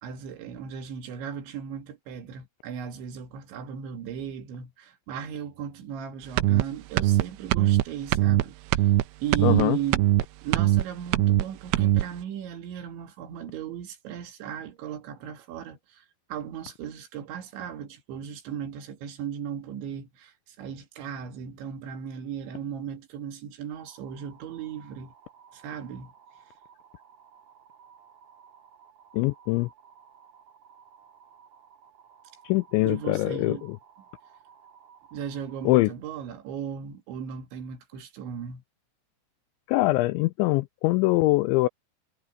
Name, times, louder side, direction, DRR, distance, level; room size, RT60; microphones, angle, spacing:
voice 1, 0.0-10.1 10.4-25.1 25.5-26.1 32.9-33.7 35.1-38.6, right 8 dB, 70° right, 4.2 m, -36 dB
sound 1, 6.4-6.6 7.0-7.2 7.5-7.8 8.1-8.4 8.7-9.0 9.3-9.6 9.9-10.2 10.5-10.8 11.1-11.4 11.7-12.0, right 14 dB, 90° right, 3.4 m, -21 dB
voice 2, 9.4-9.8 29.1-29.7 32.5-33.6 35.7-35.9 39.7-41.7, left 20 dB, 85° left, 2.7 m, -23 dB
sound 2, 23.7-35.8, right 7 dB, 35° right, 4.2 m, -55 dB
omnidirectional pair, 5.7 m